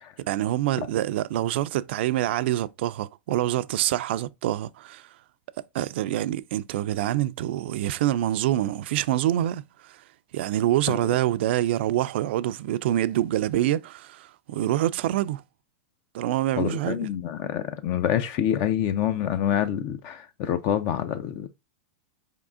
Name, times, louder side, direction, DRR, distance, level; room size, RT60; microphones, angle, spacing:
voice 1, 0.2-5.1 5.7-10.0 10.3-15.4 16.1-17.1, right 13 dB, 65° right, 0.3 m, -26 dB
voice 2, 16.6-21.5, left 10 dB, 45° left, 0.5 m, -26 dB
4.7 x 3.6 x 2.5 m
hypercardioid pair, 125°, 6 cm